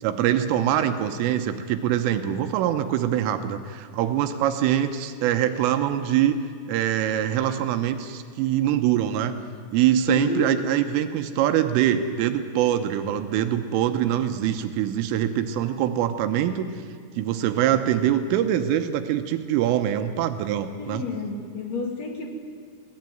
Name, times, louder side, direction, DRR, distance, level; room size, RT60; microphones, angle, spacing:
voice 1, 0.0-6.4 6.7-9.4 9.7-16.7 17.2-21.0, right 11 dB, 85° right, 8 dB, 3.4 m, -24 dB
voice 2, 10.1-10.6 20.8-22.3, left 3 dB, 45° left, 3 dB, 2.8 m, -30 dB
23.5 x 17.5 x 9.3 m, 2.1 s
omnidirectional pair, 5.9 m